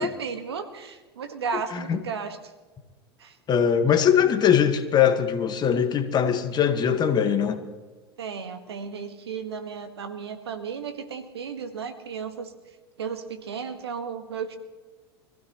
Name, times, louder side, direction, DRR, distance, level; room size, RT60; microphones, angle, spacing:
voice 1, 0.0-2.4 3.2-3.4 8.2-12.5 13.0-14.6, right 6 dB, 85° right, 8 dB, 1.6 m, -34 dB
voice 2, 1.5-2.0 3.5-7.6, left 8 dB, 30° left, 9 dB, 1.5 m, -21 dB
25.0 x 15.5 x 3.1 m, 1.3 s
hypercardioid pair, 90°, 13 cm